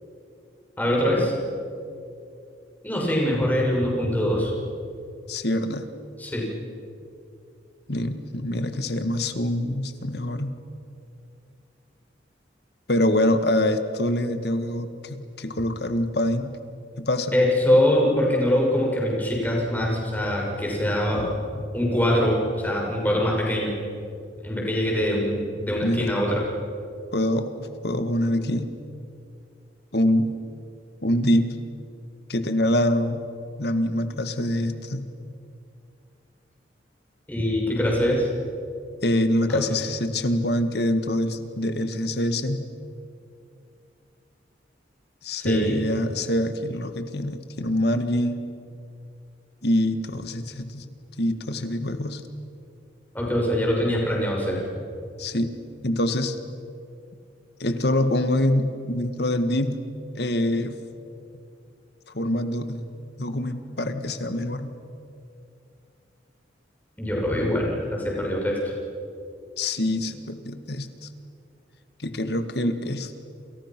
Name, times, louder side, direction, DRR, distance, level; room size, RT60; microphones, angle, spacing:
voice 1, 0.8-1.3 2.8-4.5 6.2-6.5 17.3-21.3 21.7-23.7 24.4-26.4 37.3-38.3 39.5-39.6 45.4-45.8 53.1-54.6 67.0-68.6, left 1 dB, 10° left, -2 dB, 6.4 m, -23 dB
voice 2, 5.3-5.9 7.9-10.5 12.9-16.5 17.0-17.3 25.8-26.1 27.1-28.7 29.9-30.3 31.0-31.5 32.3-33.2 33.6-35.0 39.0-42.6 45.2-48.5 49.6-50.9 51.2-52.2 55.2-55.5 55.8-56.4 57.6-59.8 60.2-60.8 62.1-62.8 63.2-64.7 69.6-71.1 72.0-73.1, left 1 dB, 60° left, 9 dB, 1.8 m, -25 dB
29.5 x 28.5 x 6.1 m, 2.5 s
head